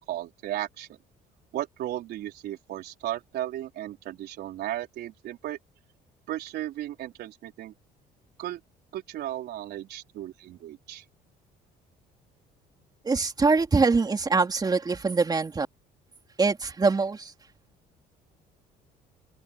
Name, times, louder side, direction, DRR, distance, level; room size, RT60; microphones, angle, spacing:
voice 1, 0.1-1.0 1.5-5.6 6.3-7.7 8.4-8.6 8.9-11.0, right 13 dB, 75° right, 4.4 m, -35 dB
voice 2, 13.0-15.7 16.4-17.3, right 4 dB, 25° right, 3.8 m, -23 dB
open air
cardioid pair, 110°, 17 cm